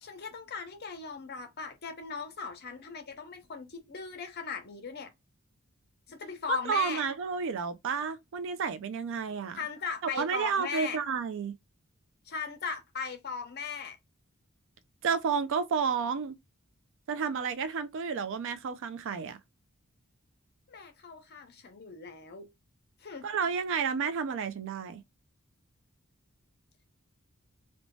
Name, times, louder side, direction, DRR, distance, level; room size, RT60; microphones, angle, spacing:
voice 1, 0.0-5.1 6.1-7.0 9.5-11.0 12.3-14.0 20.7-22.5 23.0-23.3, left 5 dB, 50° left, 0.7 m, -38 dB
voice 2, 6.7-9.6 10.1-11.5 15.0-16.4 17.1-19.4 23.2-25.0, right 6 dB, 60° right, 0.4 m, -31 dB
2.6 x 2.2 x 3.0 m
head